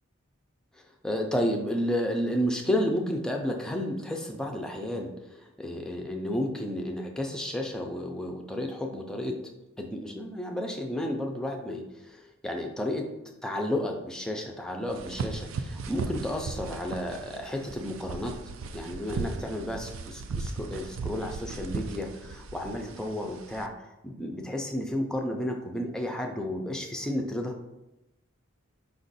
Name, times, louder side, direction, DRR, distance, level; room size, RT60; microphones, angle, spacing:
voice 1, 0.7-9.3 9.8-13.1 13.4-18.3 18.7-23.7 24.0-27.5, left 1 dB, 5° left, 2 dB, 0.4 m, -32 dB
sound 1, 14.9-23.7, right 4 dB, 65° right, 0.4 m, -37 dB
5.2 x 2.5 x 4.0 m, 0.93 s
head